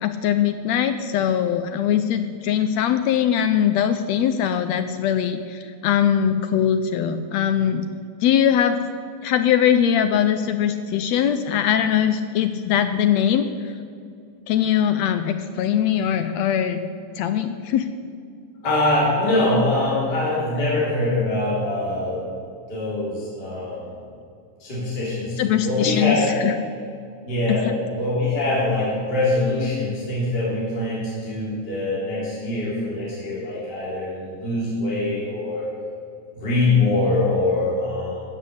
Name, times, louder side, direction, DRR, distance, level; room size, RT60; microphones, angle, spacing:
voice 1, 0.0-7.8 8.2-8.8 9.2-13.7 14.5-16.8 17.2-17.9 25.4-26.6 27.5-27.7, left 9 dB, 80° left, 9 dB, 1.6 m, -21 dB
voice 2, 18.6-22.2 22.7-23.8 24.6-26.3 27.3-35.7 36.4-38.2, left 2 dB, 35° left, -8 dB, 4.1 m, -23 dB
14.5 x 7.6 x 8.3 m, 2.3 s
omnidirectional pair, 3.5 m